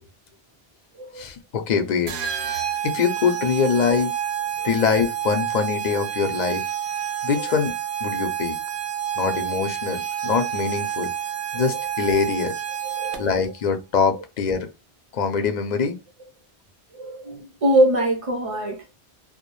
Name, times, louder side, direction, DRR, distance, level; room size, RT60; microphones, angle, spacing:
voice 1, 1.2-2.1 2.8-4.1 4.6-6.6 7.2-8.6 9.2-11.1 11.5-12.5 13.2-14.7 15.1-16.0, left 6 dB, 55° left, 0.5 m, -23 dB
sound 1, 2.1-13.5, right 9 dB, 90° right, 0.8 m, -29 dB
voice 2, 12.8-13.5 16.9-18.8, right 1 dB, 40° right, 0.5 m, -23 dB
2.2 x 2.0 x 2.9 m
omnidirectional pair, 1.1 m